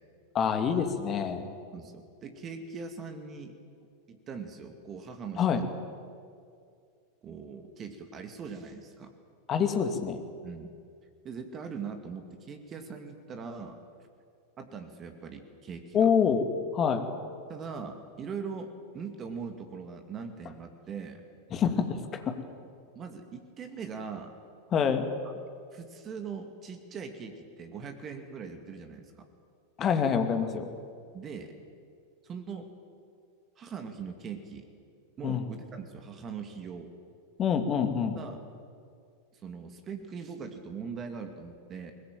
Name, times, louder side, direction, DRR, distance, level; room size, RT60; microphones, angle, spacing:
voice 1, 0.3-1.4 5.4-5.6 9.5-10.2 15.9-16.4 16.7-17.1 21.5-22.4 24.7-25.1 29.8-30.7 35.2-35.4 37.4-38.2, left 7 dB, 30° left, 6 dB, 2.5 m, -26 dB
voice 2, 1.7-3.5 4.1-5.6 7.2-9.1 10.4-10.7 11.2-13.8 14.6-16.1 17.5-21.2 22.9-24.3 25.2-25.4 25.7-29.1 31.1-31.5 32.2-32.7 33.6-34.7 35.2-36.9 38.1-38.4 39.3-41.9, right 5 dB, 25° right, 6 dB, 2.5 m, -41 dB
23.0 x 20.5 x 9.1 m, 2.3 s
figure-of-eight pair, 90°, 0 cm